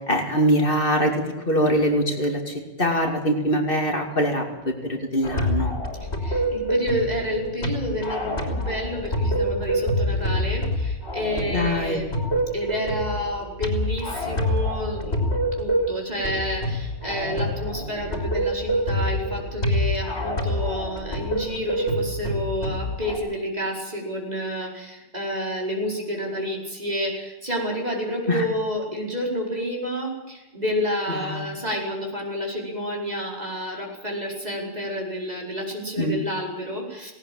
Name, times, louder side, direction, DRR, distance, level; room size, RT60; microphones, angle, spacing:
voice 1, 0.0-5.7 11.5-12.0 28.3-28.4 31.2-31.5 36.0-36.2, equal, 55° left, 3 dB, 2.9 m, -23 dB
sound 1, 5.2-23.2, equal, 85° left, 4.0 m, -26 dB
voice 2, 6.0-12.1 12.5-37.1, equal, 40° right, -1 dB, 5.2 m, -30 dB
18.5 x 18.0 x 8.8 m, 1.0 s
omnidirectional pair, 1.1 m